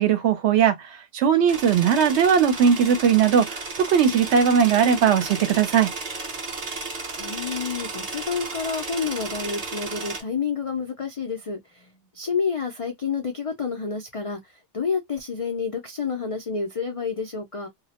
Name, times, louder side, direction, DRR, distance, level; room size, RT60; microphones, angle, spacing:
voice 1, 0.0-5.9, right 7 dB, 70° right, 0.8 m, -19 dB
sound 1, 1.5-10.2, right 3 dB, 40° right, 0.7 m, -34 dB
voice 2, 7.2-17.7, left 5 dB, 65° left, 0.3 m, -29 dB
2.3 x 2.0 x 2.7 m
omnidirectional pair, 1.3 m